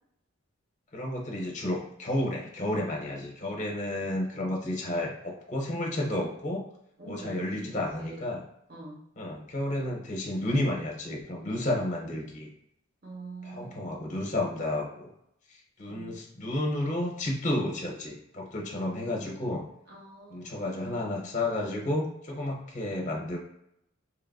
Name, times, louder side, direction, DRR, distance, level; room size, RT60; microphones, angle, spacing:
voice 1, 0.9-6.7 7.1-8.4 9.2-12.5 13.4-15.1 15.5-19.7 20.3-23.4, left 1 dB, 35° left, -1 dB, 0.6 m, -31 dB
voice 2, 7.0-8.2 8.7-9.0 13.0-14.0 15.9-16.1 19.9-20.6, right 2 dB, 45° right, -3 dB, 0.8 m, -45 dB
3.0 x 2.4 x 2.2 m, 0.77 s
head